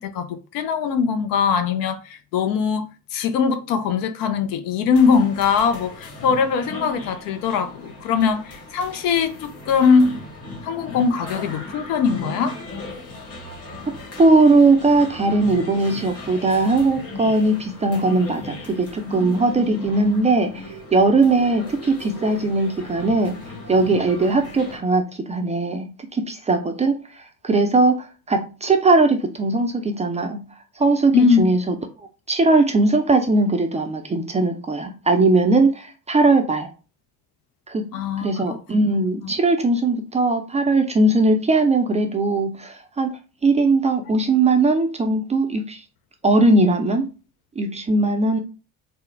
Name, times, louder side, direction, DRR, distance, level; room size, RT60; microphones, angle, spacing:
voice 1, 0.0-2.9 3.1-10.2 10.6-12.6 31.1-31.5 37.9-38.6 39.2-39.3, left 6 dB, 50° left, 0.7 m, -21 dB
sound 1, 4.9-24.8, left 2 dB, 35° left, 1.7 m, -36 dB
voice 2, 13.9-20.6 20.9-23.4 23.7-30.4 30.8-31.8 32.3-36.7 37.7-37.9 38.2-43.1 43.4-45.8 46.2-47.1 47.6-48.4, right 3 dB, 15° right, 0.5 m, -19 dB
4.2 x 2.0 x 3.2 m
figure-of-eight pair, 55°, 43 cm